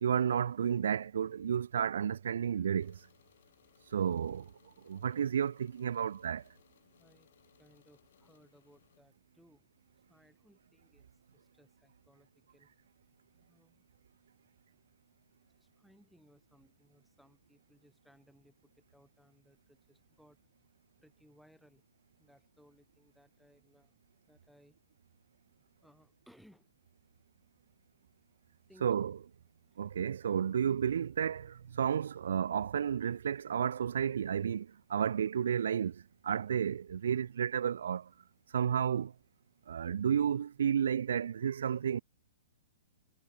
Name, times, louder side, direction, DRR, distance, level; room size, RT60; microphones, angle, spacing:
voice 1, 0.0-3.0 3.9-4.5 4.8-6.4 28.8-29.1 29.8-38.1 38.5-39.1 39.7-42.0, right 8 dB, 70° right, 0.5 m, -32 dB
sound 1, 2.8-9.0, left 11 dB, 50° left, 5.1 m, -67 dB
voice 2, 5.0-5.3 7.0-7.3 7.6-9.7 10.1-11.0 11.3-12.3 12.5-12.7 13.3-13.8 15.8-18.5 18.9-20.4 21.0-21.8 22.2-23.9 24.3-24.7 25.8-26.7 28.7-29.0 30.2-30.3, equal, ahead, 3.9 m, -64 dB
hypercardioid pair, 175°, 0 cm